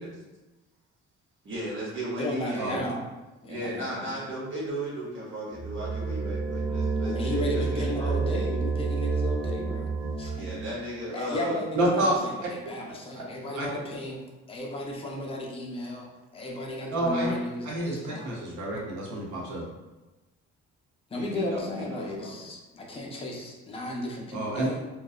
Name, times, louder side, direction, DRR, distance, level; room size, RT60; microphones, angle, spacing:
voice 1, 1.4-2.8 3.5-8.1 10.3-11.6 21.2-22.5, right 1 dB, 40° right, -6 dB, 0.8 m, -36 dB
voice 2, 2.2-3.0 3.4-4.2 7.0-9.9 10.2-10.5 11.1-14.2 14.5-16.1 16.3-18.3 21.1-24.8, left 1 dB, 20° left, -1 dB, 0.5 m, -34 dB
sound 1, 5.5-10.7, right 4 dB, 10° right, 0.8 m, -29 dB
voice 3, 11.7-12.1 13.5-13.7 16.9-17.3 17.6-19.6 24.3-24.7, right 1 dB, 75° right, -3 dB, 0.9 m, -28 dB
2.7 x 2.2 x 2.3 m, 1.1 s
cardioid pair, 90°, 30 cm